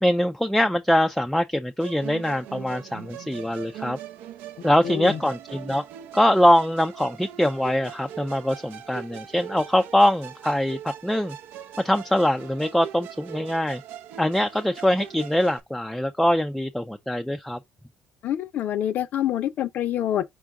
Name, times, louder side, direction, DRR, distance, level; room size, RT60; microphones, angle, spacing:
voice 1, 0.0-4.0 4.6-5.8 6.1-11.4 11.8-13.8 14.2-17.6, left 1 dB, ahead, 0.3 m, -23 dB
Musical instrument, 1.8-15.6, right 11 dB, 80° right, 0.5 m, -41 dB
voice 2, 4.8-5.2 18.2-20.2, left 11 dB, 55° left, 0.5 m, -26 dB
4.4 x 2.4 x 4.6 m
cardioid pair, 115°, 3 cm